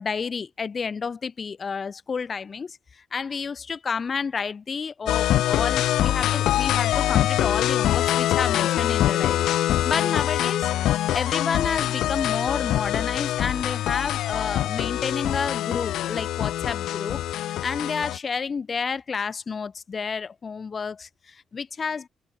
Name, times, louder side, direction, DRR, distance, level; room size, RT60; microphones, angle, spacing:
voice 1, 0.0-10.7 11.1-22.1, left 5 dB, 40° left, 7.4 m, -30 dB
sound 1, 5.1-18.2, left 13 dB, 80° left, 3.1 m, -24 dB
cardioid pair, 90°, 0 cm